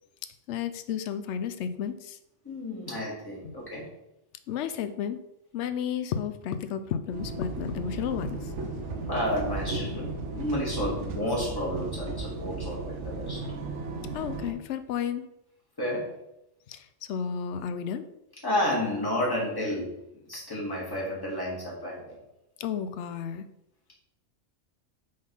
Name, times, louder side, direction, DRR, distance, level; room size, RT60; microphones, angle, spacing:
voice 1, 0.5-2.2 4.5-5.2 5.5-8.4 14.1-15.2 16.7-18.1 22.6-23.5, left 8 dB, 70° left, 11 dB, 0.9 m, -32 dB
voice 2, 2.4-3.9 9.1-13.4 15.8-16.1 18.4-19.9 20.3-22.2, left 1 dB, 20° left, -5 dB, 2.0 m, -31 dB
sound 1, 7.1-14.5, right 3 dB, 75° right, 1.2 m, -35 dB
5.3 x 3.9 x 5.4 m, 0.85 s
omnidirectional pair, 1.3 m